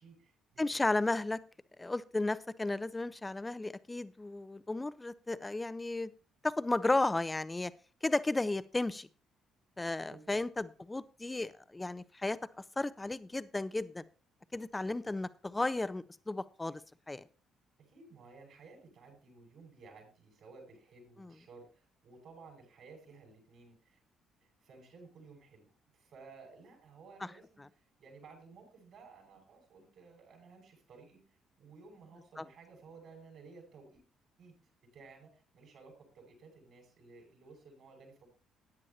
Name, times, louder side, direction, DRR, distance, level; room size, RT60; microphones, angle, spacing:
voice 1, 0.0-0.8 10.0-10.4 17.9-24.0 24.6-25.7 25.9-27.6 28.0-31.2 31.6-34.0 34.4-34.5 34.9-38.3, right 4 dB, 60° right, 2 dB, 6.3 m, -56 dB
voice 2, 0.6-1.4 1.8-6.1 6.4-7.7 8.0-9.1 9.8-12.4 12.8-14.0 14.5-16.8 17.1-17.2 21.2-21.3 27.6-27.7 32.4-32.5, left 2 dB, 20° left, 16 dB, 0.7 m, -34 dB
16.5 x 9.7 x 2.8 m, 0.35 s
hypercardioid pair, 50°, 0 cm